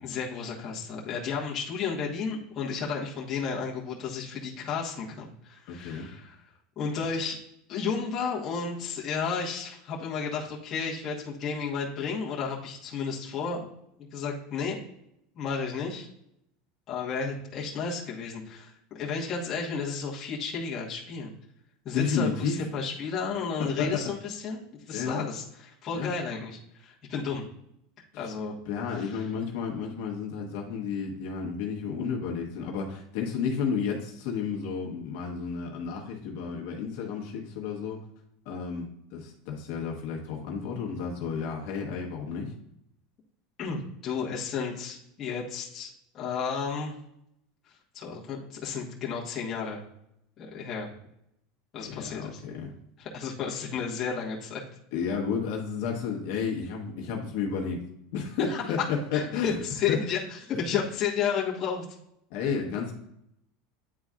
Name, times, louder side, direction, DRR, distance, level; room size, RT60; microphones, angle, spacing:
voice 1, 0.0-6.4 6.8-7.4 7.7-13.7 14.1-14.8 15.3-16.1 16.9-21.3 21.8-27.4 28.2-28.6 28.9-29.2 43.6-46.9 47.9-49.8 50.4-50.9 51.7-52.4 53.0-54.6 58.5-58.8 59.1-61.8, left 5 dB, 25° left, -4 dB, 1.3 m, -32 dB
voice 2, 5.7-6.1 21.9-22.6 23.6-24.0 24.9-25.2 25.9-26.1 28.1-28.2 28.7-38.0 38.4-42.5 51.8-52.7 54.9-57.8 58.1-58.8 59.1-59.6 59.9-60.0 60.7-60.8 62.3-62.9, left 6 dB, 55° left, 0 dB, 1.2 m, -32 dB
9.7 x 4.0 x 2.4 m, 0.78 s
supercardioid pair, 175°, 0 cm